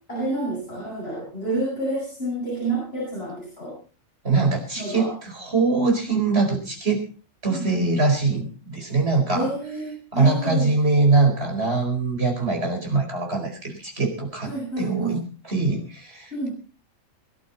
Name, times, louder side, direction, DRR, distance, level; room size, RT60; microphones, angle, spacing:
voice 1, 0.1-3.7 4.8-5.1 7.5-7.8 9.3-10.7 14.4-15.2 16.3-16.5, right 2 dB, 50° left, -5 dB, 8.4 m, -29 dB
voice 2, 4.2-7.0 7.4-9.5 10.1-16.5, right 3 dB, 55° right, 1 dB, 5.0 m, -23 dB
23.0 x 11.5 x 4.2 m, 0.35 s
omnidirectional pair, 1.3 m